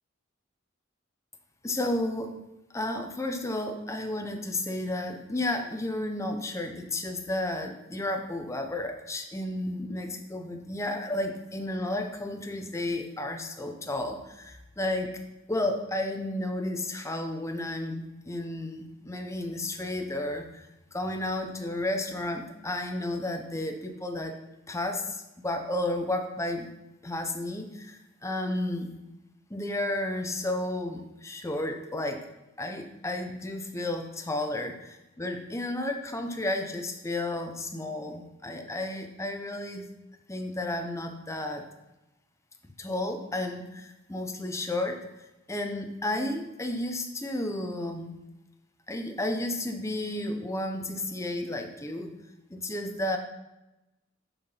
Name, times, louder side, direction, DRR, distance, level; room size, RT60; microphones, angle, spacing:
voice 1, 1.6-2.3 2.7-15.1 15.5-24.3 24.7-26.7 27.0-28.9 29.5-32.2 32.6-39.9 40.3-41.6 42.8-45.0 45.5-48.1 48.9-52.1 52.5-53.2, left 1 dB, 15° left, 4 dB, 0.8 m, -32 dB
7.0 x 5.8 x 5.6 m, 0.95 s
head